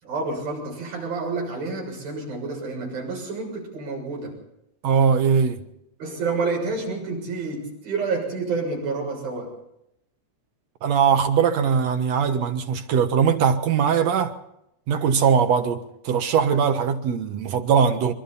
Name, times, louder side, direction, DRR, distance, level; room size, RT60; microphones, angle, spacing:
voice 1, 0.0-4.4 6.0-9.5, right 4 dB, 85° right, 8.9 m, -29 dB
voice 2, 4.8-5.6 10.8-14.3 14.9-18.1, right 7 dB, 60° right, 2.2 m, -20 dB
26.0 x 23.5 x 4.2 m
omnidirectional pair, 4.0 m